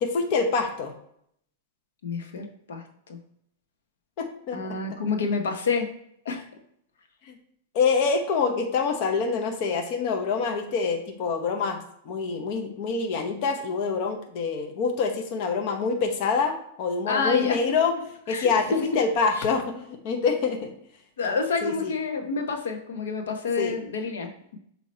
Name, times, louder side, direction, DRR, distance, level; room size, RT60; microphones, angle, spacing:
voice 1, 0.0-0.9 4.2-4.6 4.9-5.0 7.2-7.3 7.7-11.8 12.0-17.9 18.3-20.7 21.6-21.9 23.6-23.7, left 5 dB, 45° left, 4 dB, 0.9 m, -26 dB
voice 2, 2.0-3.2 4.5-5.9 6.2-6.4 17.1-17.6 18.3-18.8 19.4-19.5 21.2-24.6, left 4 dB, 90° left, 4 dB, 1.1 m, -28 dB
7.5 x 2.9 x 4.3 m, 0.71 s
supercardioid pair, 145°, 0 cm